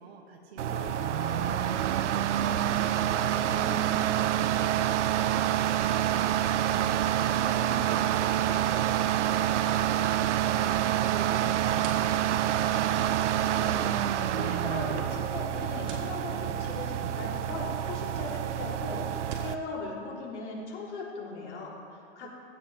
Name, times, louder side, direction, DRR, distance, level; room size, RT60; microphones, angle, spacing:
voice 1, 0.0-6.7 7.0-9.4 22.2-22.3, right 4 dB, 60° right, -1 dB, 1.9 m, -46 dB
sound 1, 0.6-19.5, right 11 dB, 90° right, 0.6 m, -27 dB
sound 2, 11.3-19.6, right 4 dB, 35° right, 1.7 m, -52 dB
voice 2, 13.4-13.8 14.1-19.0 19.4-22.3, left 3 dB, 80° left, -4 dB, 3.6 m, -39 dB
sound 3, 15.0-15.7 16.8-16.9 17.2-18.7 19.4-19.9, right 6 dB, 20° right, 0.6 m, -49 dB
16.0 x 12.5 x 3.4 m, 2.6 s
hypercardioid pair, 155°, 34 cm